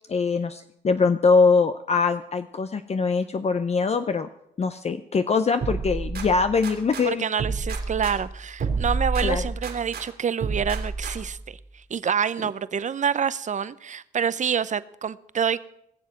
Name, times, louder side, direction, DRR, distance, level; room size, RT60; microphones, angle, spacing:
voice 1, 0.1-4.3 4.6-7.3 9.2-9.4, left 4 dB, 35° left, 9 dB, 0.6 m, -22 dB
sound 1, 5.6-7.1 7.4-10.1 10.4-11.4, right 4 dB, 65° right, 3.0 m, -29 dB
voice 2, 7.0-15.6, right 7 dB, 45° right, 17 dB, 0.6 m, -27 dB
19.0 x 7.3 x 7.5 m, 0.76 s
cardioid pair, 100°, 18 cm